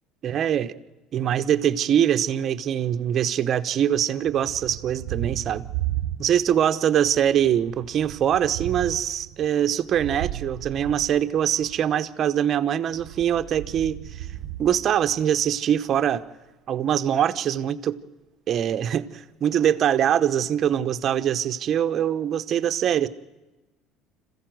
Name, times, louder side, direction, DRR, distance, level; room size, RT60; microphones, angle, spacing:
voice 1, 0.2-0.7 1.1-5.7 6.2-14.3 14.6-16.2 16.7-18.0 18.5-23.1, right 9 dB, 45° right, 0.9 m, -23 dB
Thunder, 4.2-6.7 7.0-11.8 12.9-15.5, right 14 dB, 70° right, 0.9 m, -35 dB
26.5 x 15.5 x 7.8 m
supercardioid pair, 105°, 0 cm